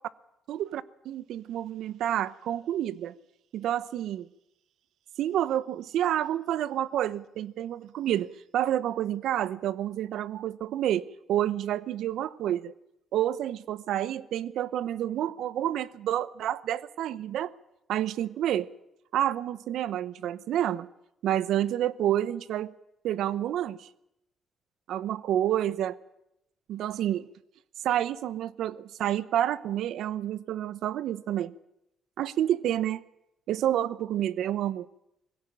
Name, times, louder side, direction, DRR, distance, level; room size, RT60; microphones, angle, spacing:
voice 1, 0.5-3.1 3.5-4.3 5.2-11.0 11.3-12.7 13.1-17.5 17.9-18.7 19.1-20.9 21.2-22.7 23.0-23.9 24.9-26.0 26.7-27.3 27.8-31.5 32.2-33.0 33.5-34.9, right 11 dB, 80° right, 0.8 m, -29 dB
21.5 x 16.5 x 8.9 m
cardioid pair, 90°, 0 cm